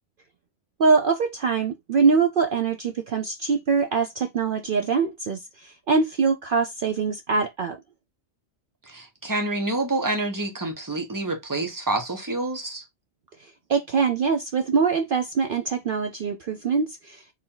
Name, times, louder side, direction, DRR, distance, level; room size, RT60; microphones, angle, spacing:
voice 1, 0.8-7.8 13.4-17.3, right 5 dB, 60° right, 0.6 m, -23 dB
voice 2, 8.9-12.8, right 2 dB, 15° right, 1.0 m, -28 dB
4.6 x 2.7 x 3.8 m
omnidirectional pair, 1.4 m